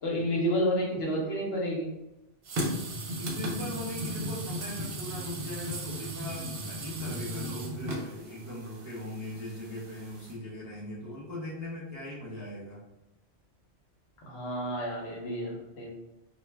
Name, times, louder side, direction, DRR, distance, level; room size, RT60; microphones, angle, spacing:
voice 1, 0.0-1.9 14.2-15.9, equal, 65° left, -2 dB, 1.0 m, -30 dB
sound 1, 2.5-10.3, equal, 65° right, 0.8 m, -36 dB
voice 2, 3.1-12.8, left 1 dB, 25° right, -6 dB, 0.3 m, -40 dB
2.2 x 2.1 x 3.2 m, 0.93 s
omnidirectional pair, 1.2 m